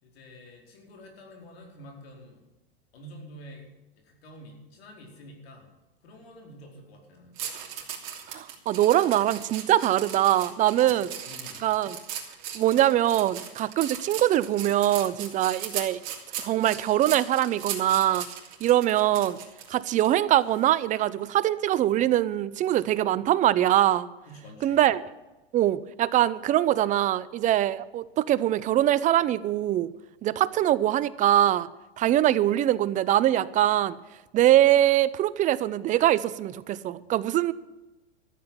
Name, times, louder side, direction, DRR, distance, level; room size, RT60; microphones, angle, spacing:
voice 1, 0.0-2.4 2.9-3.7 3.9-5.7 6.0-7.4 10.8-11.6 24.3-24.9, equal, 75° left, 2 dB, 4.7 m, -48 dB
sound 1, 7.4-20.1 20.5-20.7, right 9 dB, 50° right, 3.1 m, -38 dB
voice 2, 8.3-11.1 11.6-12.0 12.5-16.0 16.4-18.3 18.6-19.4 19.7-24.1 24.6-25.0 25.5-29.9 30.2-31.7 32.0-34.0 34.3-37.5, right 13 dB, 25° right, 18 dB, 0.5 m, -23 dB
13.5 x 7.8 x 9.6 m, 1.0 s
hypercardioid pair, 125°, 31 cm